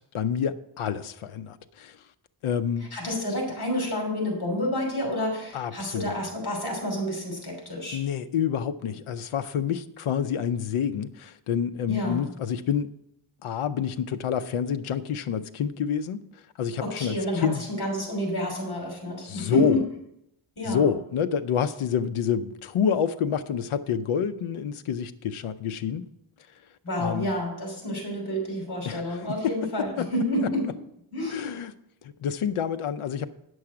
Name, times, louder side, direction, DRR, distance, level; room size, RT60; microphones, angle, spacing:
voice 1, 0.0-2.0 2.4-2.9 5.5-6.2 7.9-12.9 13.4-16.2 16.6-17.6 19.2-19.8 20.7-26.0 27.0-27.3 28.8-29.5 30.0-30.1 31.3-31.7 32.0-33.3, left 7 dB, 80° left, 10 dB, 0.7 m, -28 dB
voice 2, 2.9-8.0 11.9-12.2 16.8-19.8 20.6-20.9 26.8-30.7 31.1-31.5, left 1 dB, 50° left, 1 dB, 3.3 m, -29 dB
9.7 x 6.3 x 5.8 m, 0.79 s
wide cardioid pair, 140°, 49 cm